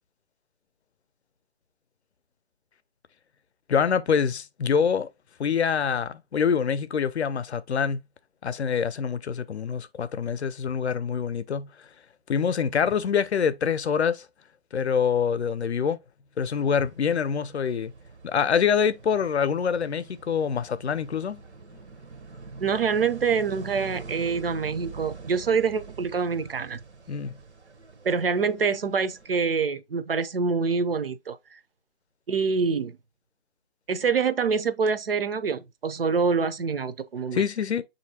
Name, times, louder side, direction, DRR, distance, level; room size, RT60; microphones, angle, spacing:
voice 1, 3.7-5.1 5.4-8.0 8.4-11.7 12.3-14.3 14.7-16.0 16.4-17.9 18.2-21.4 27.1-27.4 37.3-37.8, left 7 dB, 75° left, 0.6 m, -25 dB
sound 1, 16.4-29.4, right 4 dB, 85° right, 0.8 m, -45 dB
voice 2, 22.6-26.8 28.0-31.6 32.3-32.9 33.9-37.4, right 5 dB, 60° right, 0.5 m, -26 dB
6.5 x 2.7 x 2.7 m
hypercardioid pair, 170°, 33 cm